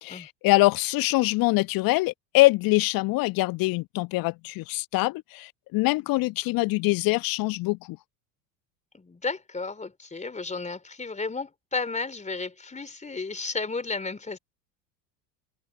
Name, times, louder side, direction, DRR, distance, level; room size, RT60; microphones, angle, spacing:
voice 1, 0.0-8.0, left 21 dB, 45° left, 1.4 m, -24 dB
voice 2, 8.9-14.4, left 3 dB, 15° left, 3.7 m, -33 dB
figure-of-eight pair, 70°, 49 cm